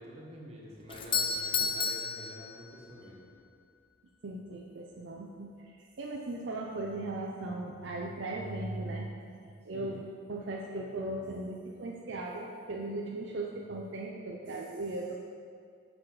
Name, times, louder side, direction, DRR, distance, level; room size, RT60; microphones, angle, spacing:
voice 1, 0.0-3.3 9.7-10.0, equal, 35° right, -4 dB, 1.3 m, -47 dB
Doorbell, 0.9-3.1, left 5 dB, 25° left, 0.3 m, -32 dB
voice 2, 4.2-10.0 10.3-15.2, right 2 dB, 65° right, -1 dB, 0.5 m, -38 dB
6.4 x 6.0 x 4.9 m, 2.3 s
head